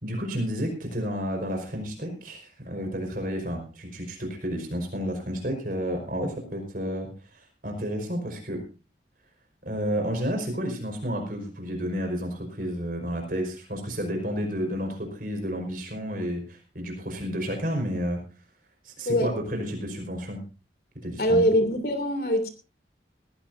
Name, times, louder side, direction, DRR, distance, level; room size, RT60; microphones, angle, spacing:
voice 1, 0.0-8.6 9.6-18.2 18.8-20.4 21.0-21.5, equal, 50° right, 3 dB, 4.9 m, -31 dB
voice 2, 21.2-22.5, equal, 55° left, 7 dB, 2.9 m, -23 dB
20.0 x 15.0 x 2.7 m, 0.33 s
head